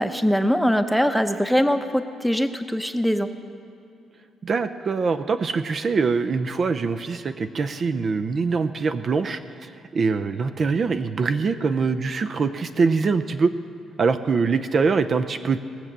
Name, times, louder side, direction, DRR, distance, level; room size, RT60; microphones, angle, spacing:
voice 1, 0.0-3.3, equal, ahead, 8 dB, 0.7 m, -22 dB
voice 2, 4.4-13.5 14.0-15.6, right 4 dB, 45° right, 10 dB, 0.5 m, -23 dB
18.0 x 7.4 x 6.7 m, 2.7 s
cardioid pair, 90°, 0 cm